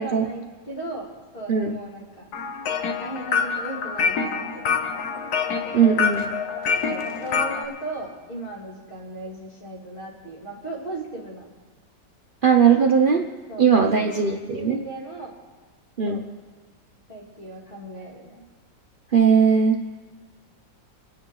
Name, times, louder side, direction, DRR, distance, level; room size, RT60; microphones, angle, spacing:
voice 1, 0.0-2.2 3.0-5.1 6.9-11.5 12.7-12.9 13.5-15.3 16.0-16.2 17.1-18.4, right 2 dB, 30° left, -4 dB, 2.9 m, -36 dB
sound 1, 2.3-7.7, left 5 dB, 60° left, 1.3 m, -26 dB
voice 2, 5.7-6.3 12.4-13.2 13.6-14.8 16.0-16.2 19.1-19.8, right 6 dB, 80° right, 2 dB, 0.4 m, -18 dB
26.0 x 9.6 x 3.9 m, 1.4 s
omnidirectional pair, 2.0 m